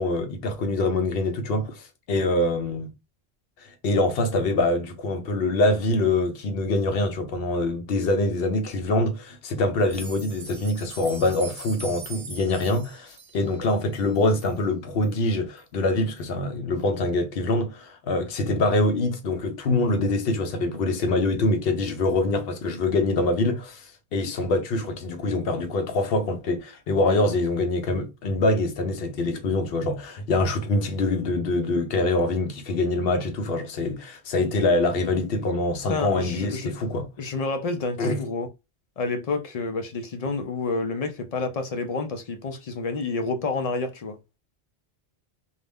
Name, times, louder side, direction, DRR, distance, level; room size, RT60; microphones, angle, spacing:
voice 1, 0.0-2.9 3.6-37.1 38.0-38.2, left 2 dB, 70° left, 0.8 m, -24 dB
sound 1, 9.8-14.6 15.0-15.1 15.6-15.7 16.2-16.3, right 3 dB, 65° right, 1.1 m, -42 dB
voice 2, 35.9-36.8 37.2-38.5 39.0-44.2, left 3 dB, 55° left, 0.4 m, -29 dB
2.5 x 2.0 x 3.4 m
omnidirectional pair, 1.0 m